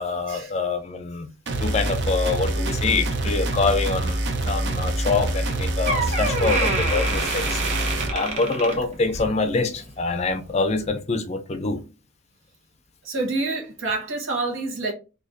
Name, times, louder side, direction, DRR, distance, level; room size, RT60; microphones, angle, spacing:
voice 1, 0.0-7.9 8.1-11.8, left 3 dB, 30° left, 0.4 m, -25 dB
sound 1, 1.5-8.2, right 2 dB, 55° right, 0.6 m, -25 dB
Door, 5.4-5.5 5.9-9.4 9.7-10.0 10.7-10.8, right 2 dB, 30° right, 0.9 m, -27 dB
voice 2, 13.0-14.9, right 3 dB, 70° right, 1.2 m, -27 dB
4.0 x 2.7 x 2.5 m
head